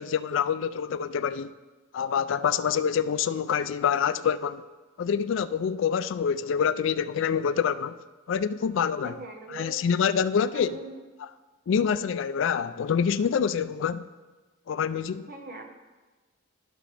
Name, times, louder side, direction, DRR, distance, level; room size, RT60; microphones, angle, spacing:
voice 1, 0.0-1.5 1.9-4.6 5.0-8.0 8.3-9.2 9.5-10.8 11.2-11.3 11.7-14.1 14.7-15.3, left 7 dB, 65° left, 0.3 m, -26 dB
voice 2, 9.0-9.8 10.5-11.0 15.3-15.6, right 2 dB, 45° right, 1.1 m, -41 dB
16.0 x 6.2 x 3.3 m
head